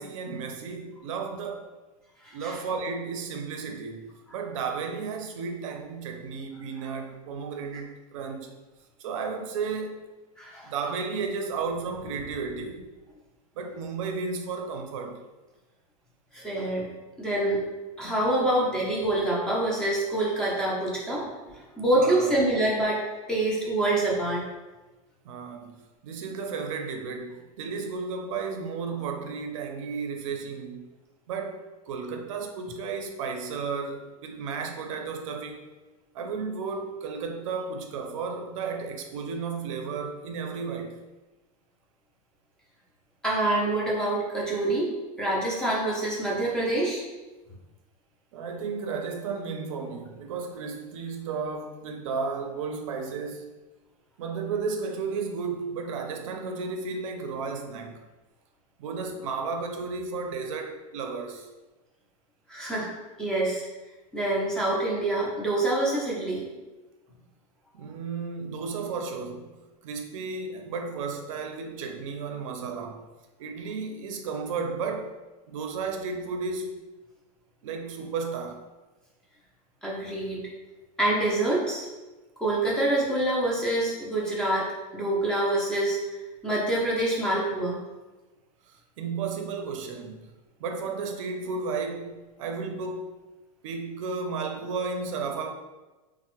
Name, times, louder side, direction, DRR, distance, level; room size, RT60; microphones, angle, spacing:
voice 1, 0.0-1.7 2.3-4.0 4.3-8.5 9.0-10.0 10.6-12.9 13.6-15.2 22.0-22.4 25.2-30.9 31.3-35.6 36.1-41.0 48.3-53.5 54.2-58.0 58.8-61.5 67.7-73.0 73.4-75.1 75.5-76.8 77.6-78.6 88.7-90.3 90.6-93.2 93.6-95.5, right 5 dB, 60° right, 4 dB, 0.4 m, -33 dB
voice 2, 2.2-2.6 10.4-10.7 16.3-16.9 17.2-17.6 18.0-21.2 21.5-23.0 23.3-24.4 43.2-47.0 62.5-62.9 63.2-63.7 64.1-66.5 79.8-80.4 81.0-81.9 82.4-86.2 86.4-87.8, right 1 dB, 5° left, -5 dB, 0.4 m, -26 dB
3.2 x 2.0 x 2.9 m, 1.2 s
supercardioid pair, 170°, 19 cm